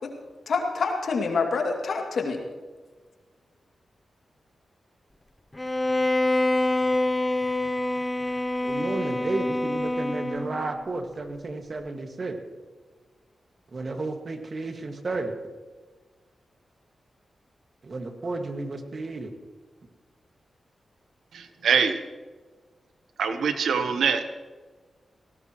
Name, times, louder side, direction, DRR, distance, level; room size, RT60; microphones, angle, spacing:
voice 1, 0.5-2.4, left 4 dB, 75° left, 2 dB, 2.5 m, -26 dB
Bowed string instrument, 5.6-10.7, left 1 dB, 25° left, 0.7 m, -26 dB
voice 2, 8.6-12.4 13.7-15.3 17.8-19.3, right 2 dB, 55° right, 5 dB, 2.0 m, -32 dB
voice 3, 21.3-22.0 23.2-24.2, right 6 dB, 85° right, 8 dB, 1.1 m, -24 dB
19.0 x 18.0 x 3.1 m, 1.4 s
cardioid pair, 45°, 0 cm